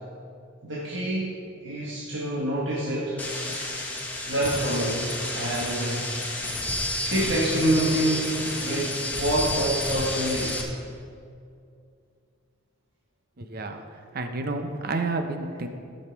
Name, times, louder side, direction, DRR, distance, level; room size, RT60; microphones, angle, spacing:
voice 1, 0.6-1.4 1.6-3.2 4.3-6.1 7.1-10.6, right 1 dB, 65° right, -5 dB, 1.5 m, -27 dB
sound 1, 3.2-10.6, left 1 dB, 10° left, 1.5 m, -30 dB
voice 2, 13.4-15.7, right 3 dB, 50° right, 6 dB, 0.9 m, -30 dB
16.0 x 6.5 x 4.6 m, 2.4 s
head